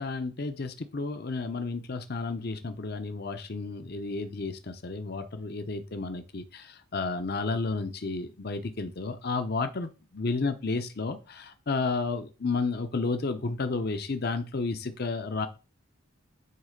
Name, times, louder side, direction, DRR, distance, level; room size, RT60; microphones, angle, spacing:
voice 1, 0.0-15.5, left 3 dB, 45° left, 8 dB, 0.7 m, -32 dB
9.4 x 3.2 x 5.1 m, 0.32 s
head